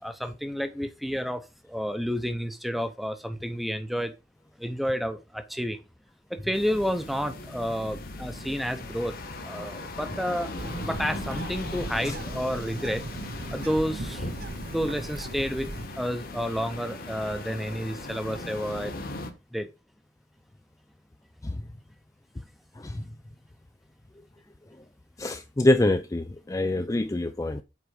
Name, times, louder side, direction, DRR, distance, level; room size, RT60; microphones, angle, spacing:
voice 1, 0.0-4.1 4.6-5.8 6.3-9.2 9.4-10.5 10.8-13.0 13.5-14.3 14.7-15.7 15.9-18.9 19.5-19.7, equal, ahead, 0.8 m, -30 dB
sound 1, 6.5-19.3, left 2 dB, 50° left, 1.3 m, -38 dB
Bird, 10.6-15.9, right 2 dB, 55° right, 0.9 m, -38 dB
voice 2, 25.2-27.6, left 1 dB, 20° left, 0.4 m, -25 dB
8.0 x 4.7 x 4.9 m
head